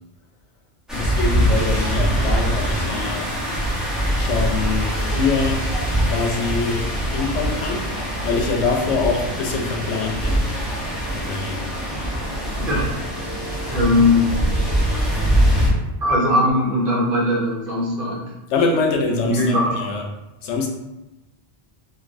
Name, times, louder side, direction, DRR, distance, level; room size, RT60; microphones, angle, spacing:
voice 1, 0.9-3.2 4.1-5.6 6.0-7.9 8.2-10.4 11.1-11.6 18.5-20.0 20.4-20.7, left 4 dB, 85° left, 2 dB, 0.9 m, -24 dB
sound 1, 0.9-15.7, right 1 dB, ahead, 0.4 m, -23 dB
voice 2, 12.6-13.0 13.7-14.3 16.0-18.2 19.3-19.7, left 2 dB, 55° right, -4 dB, 0.9 m, -19 dB
3.2 x 2.5 x 2.5 m, 0.99 s
omnidirectional pair, 1.2 m